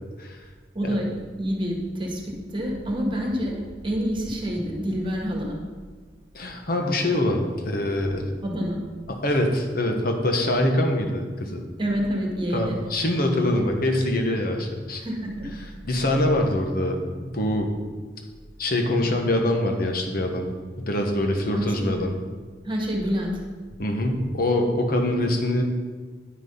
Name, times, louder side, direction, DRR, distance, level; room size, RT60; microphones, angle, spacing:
voice 1, 0.7-1.1 1.4-5.6 8.4-8.8 11.8-12.8 15.0-15.5 21.5-22.1 22.6-23.4, equal, 30° right, -1 dB, 1.7 m, -27 dB
voice 2, 6.3-8.3 9.1-11.6 12.5-15.0 15.8-17.7 18.6-20.5 20.8-22.2 23.8-25.6, left 1 dB, 55° left, 3 dB, 1.3 m, -24 dB
9.9 x 6.2 x 5.5 m, 1.5 s
head